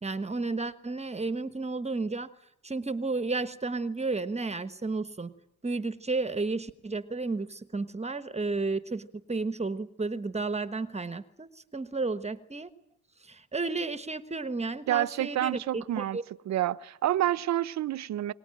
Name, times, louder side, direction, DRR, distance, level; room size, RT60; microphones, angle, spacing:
voice 1, 0.0-2.3 2.6-5.3 5.6-12.7 13.2-16.2, right 3 dB, 20° right, 1.2 m, -32 dB
voice 2, 14.9-16.2 16.5-18.3, right 13 dB, 65° right, 0.8 m, -28 dB
23.0 x 19.5 x 9.0 m
cardioid pair, 90°, 30 cm